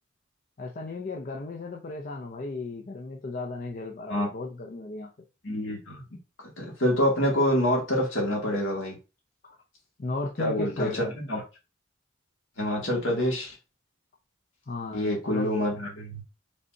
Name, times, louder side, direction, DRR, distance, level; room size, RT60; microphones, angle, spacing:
voice 1, 0.6-5.1 10.0-11.1 14.7-15.5, left 3 dB, 40° left, 0.6 m, -35 dB
voice 2, 5.4-6.0 6.6-9.0 10.4-11.0 11.3-11.4 12.6-13.5 14.9-16.2, left 1 dB, 65° left, 2.1 m, -26 dB
5.2 x 3.3 x 2.7 m
head